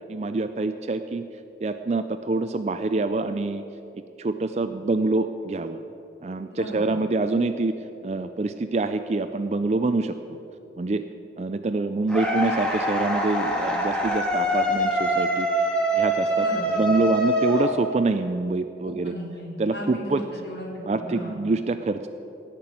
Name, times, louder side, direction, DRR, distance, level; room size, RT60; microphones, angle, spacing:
voice 1, 0.1-1.2 1.6-3.6 3.9-5.8 6.2-7.7 8.0-10.4 10.8-11.0 11.4-15.5 15.9-19.1 19.6-20.2 20.9-22.1, right 3 dB, 40° right, 9 dB, 0.4 m, -26 dB
voice 2, 6.5-6.9 16.4-16.8 18.8-21.4, equal, 75° left, -3 dB, 3.2 m, -36 dB
sound 1, 12.1-18.2, equal, 5° left, 1.5 m, -24 dB
17.0 x 6.0 x 8.6 m, 2.8 s
head